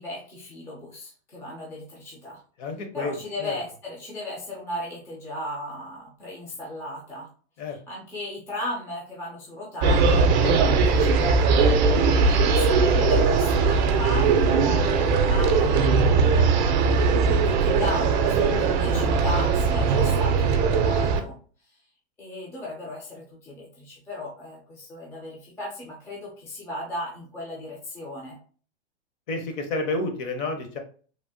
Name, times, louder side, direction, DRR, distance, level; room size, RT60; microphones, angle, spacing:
voice 1, 0.0-2.4 2.9-7.3 7.7-11.4 11.8-21.7 22.2-28.4, left 1 dB, 5° left, -3 dB, 0.4 m, -36 dB
voice 2, 2.6-3.2 3.4-3.5 7.6-7.8 10.4-10.6 29.3-30.8, left 2 dB, 40° left, 5 dB, 0.8 m, -30 dB
sound 1, 9.8-21.2, right 4 dB, 45° right, 0.5 m, -20 dB
3.2 x 2.1 x 2.6 m, 0.41 s
hypercardioid pair, 140°, 33 cm